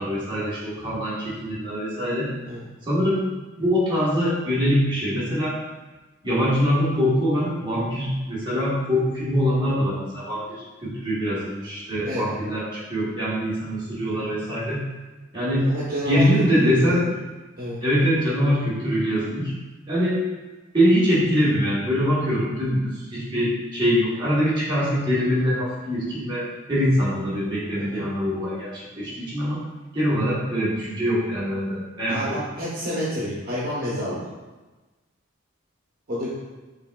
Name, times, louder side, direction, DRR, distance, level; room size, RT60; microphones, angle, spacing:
voice 1, 0.0-2.3 2.8-3.2 3.6-5.5 6.2-14.8 15.3-15.7 16.0-17.1 17.8-19.5 19.9-20.2 20.7-29.6 29.9-32.4, equal, 25° right, -9 dB, 1.3 m, -23 dB
voice 2, 12.0-12.3 14.1-14.3 15.6-16.9 17.6-17.8 27.7-28.0 32.1-34.3 36.1-36.3, equal, 45° right, -8 dB, 0.9 m, -29 dB
5.1 x 3.4 x 2.3 m, 1.2 s
head